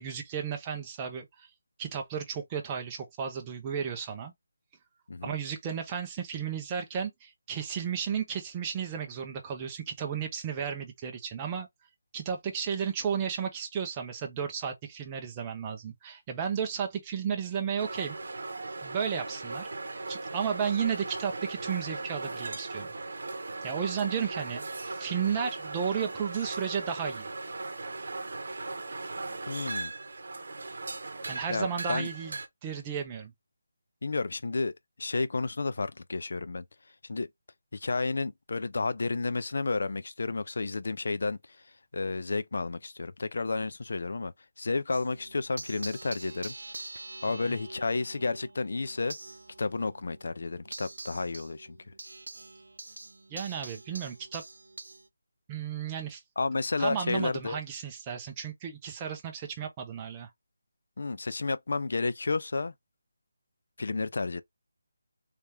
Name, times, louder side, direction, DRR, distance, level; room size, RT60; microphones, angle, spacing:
voice 1, 0.0-1.5 1.8-4.3 5.2-11.7 12.1-18.2 18.8-19.7 20.1-22.9 23.6-27.3 31.3-32.4 32.6-33.3 47.3-47.6 53.3-54.4 55.5-56.2 56.8-60.3, right 7 dB, 15° right, 0.6 m, -33 dB
sound 1, 17.8-32.5, right 3 dB, 60° right, 0.9 m, -38 dB
voice 2, 29.5-29.9 31.5-32.1 34.0-34.7 35.0-36.6 37.1-37.3 37.7-41.4 41.9-46.5 47.2-49.1 49.6-51.8 56.4-57.6 61.0-62.7 63.8-64.4, left 3 dB, 60° left, 0.4 m, -31 dB
sound 2, 44.9-55.1, right 2 dB, 80° right, 0.5 m, -45 dB
3.3 x 2.8 x 3.3 m
figure-of-eight pair, 175°, 0 cm